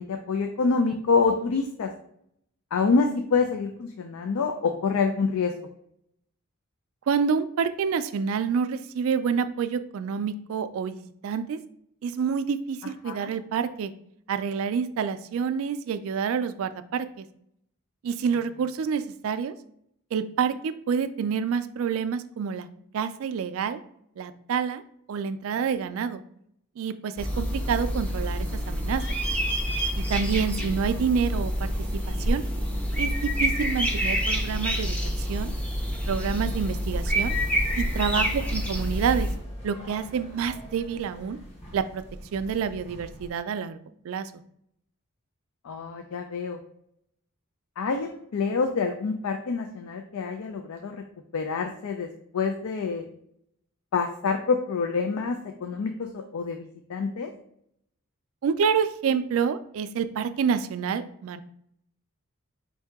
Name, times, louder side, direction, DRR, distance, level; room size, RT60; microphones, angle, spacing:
voice 1, 0.0-1.9 2.7-5.5 13.0-13.3 30.6-30.8 38.1-38.2 45.6-46.6 47.8-51.0 51.3-52.1 52.3-53.0 53.9-57.3, left 4 dB, 75° left, 5 dB, 0.4 m, -27 dB
voice 2, 7.1-11.6 12.0-13.9 14.3-17.2 18.0-19.5 20.1-22.7 22.9-23.8 24.2-24.8 25.1-26.2 26.8-29.0 30.0-31.7 32.1-32.4 33.0-35.5 36.1-37.3 37.8-39.3 39.6-41.4 41.7-42.0 42.3-43.8 44.0-44.3 58.4-61.4, right 6 dB, 65° right, 12 dB, 0.3 m, -28 dB
sound 1, 27.2-39.4, equal, 5° left, 0.5 m, -27 dB
sound 2, 36.7-43.3, equal, 30° left, 0.9 m, -43 dB
4.6 x 2.7 x 3.4 m, 0.71 s
head